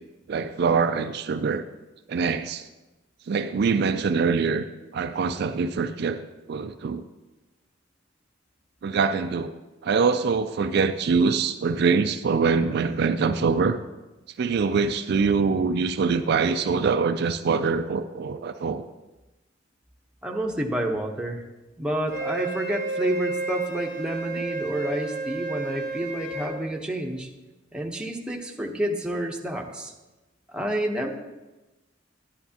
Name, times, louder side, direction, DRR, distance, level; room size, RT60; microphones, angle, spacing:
voice 1, 0.3-1.6 2.1-2.7 3.3-4.7 4.9-7.1 8.8-9.5 9.8-13.8 14.4-18.8, right 5 dB, 55° right, 9 dB, 0.4 m, -24 dB
voice 2, 20.2-21.4 21.8-27.3 27.7-29.9 30.5-31.1, right 1 dB, 5° right, 0 dB, 0.8 m, -29 dB
Wind instrument woodwind instrument, 22.1-26.5, right 3 dB, 65° left, 2.5 m, -31 dB
11.5 x 11.0 x 2.8 m, 1.1 s
head